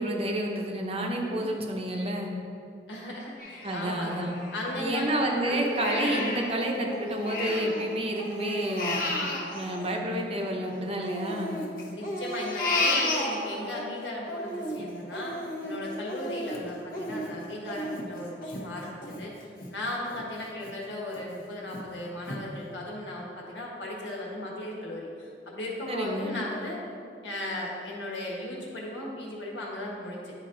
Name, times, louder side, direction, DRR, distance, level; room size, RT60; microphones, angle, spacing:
voice 1, 0.0-2.3 3.6-4.4 4.8-9.0 9.5-11.6 25.9-26.4, right 1 dB, 35° right, 1 dB, 0.8 m, -29 dB
voice 2, 1.1-1.5 2.9-4.1 4.5-5.6 11.9-26.8 27.2-30.3, left 1 dB, 80° left, -3 dB, 1.5 m, -37 dB
Crying sobbing, 3.4-5.1 5.5-7.8 8.2-10.6 11.0-13.8 14.2-19.7 20.1-20.2 20.7-21.2 21.7-21.8 22.3-22.4, left 1 dB, 55° left, 1.0 m, -32 dB
10.5 x 4.3 x 3.9 m, 2.5 s
head